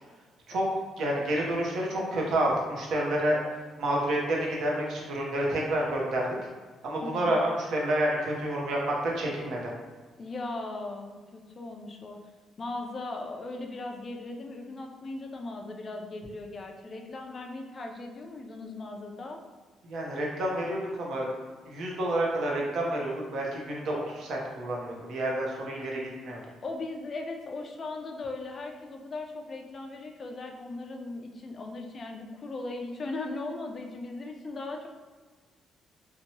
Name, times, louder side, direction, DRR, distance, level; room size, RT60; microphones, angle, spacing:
voice 1, 0.5-3.4 3.8-6.4 6.8-9.6 19.8-21.3 21.7-26.4, right 1 dB, 65° right, -2 dB, 0.7 m, -29 dB
voice 2, 7.0-7.3 10.2-12.2 12.6-19.4 26.6-34.9, left 2 dB, 35° left, 2 dB, 0.3 m, -38 dB
2.8 x 2.2 x 2.9 m, 1.4 s
cardioid pair, 145°, 0 cm